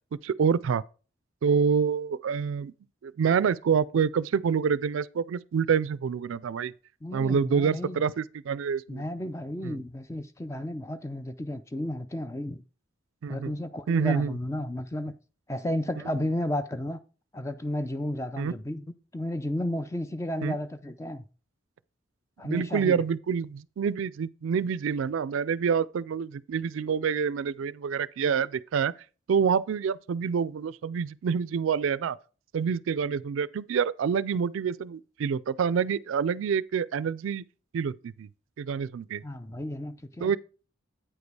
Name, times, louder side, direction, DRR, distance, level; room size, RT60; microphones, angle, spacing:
voice 1, 0.2-0.8 1.4-2.7 3.0-6.7 7.1-9.0 9.6-9.8 13.2-13.5 13.9-14.4 18.4-18.5 20.4-20.6 22.4-28.9 29.3-32.2 32.5-37.4 37.7-38.3 38.6-39.2 40.2-40.4, right 6 dB, 75° right, 0.3 m, -27 dB
voice 2, 7.0-8.0 8.9-12.6 13.3-15.1 15.5-17.0 17.3-18.8 19.1-21.2 22.4-23.0 39.2-40.4, left 1 dB, 15° left, 0.4 m, -33 dB
8.7 x 5.1 x 4.7 m
head